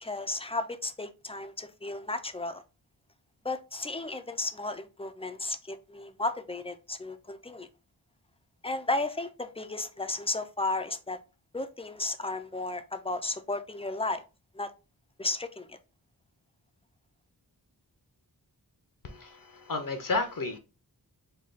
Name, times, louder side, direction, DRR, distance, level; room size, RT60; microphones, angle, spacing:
voice 1, 0.0-2.6 3.4-7.7 8.6-11.2 11.5-14.2 14.5-14.7 15.2-15.8, left 2 dB, 15° left, 0.3 m, -34 dB
voice 2, 19.0-20.6, left 3 dB, 55° left, 0.6 m, -32 dB
3.3 x 2.3 x 3.8 m
wide cardioid pair, 80°, 39 cm